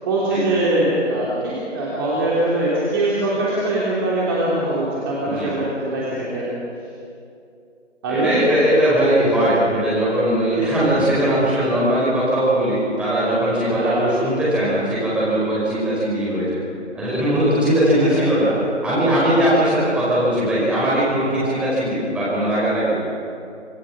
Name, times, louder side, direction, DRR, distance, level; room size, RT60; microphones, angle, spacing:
voice 1, 0.0-6.5 8.0-8.4 10.5-10.6 10.9-11.0 13.7-14.0 17.9-18.1 18.5-18.6 21.1-21.6, right 2 dB, 20° right, -7 dB, 3.0 m, -22 dB
voice 2, 8.1-16.6 16.9-18.5 18.8-23.0, right 1 dB, 5° right, -9 dB, 5.1 m, -19 dB
26.5 x 19.0 x 6.1 m, 2.5 s
figure-of-eight pair, 155°, 36 cm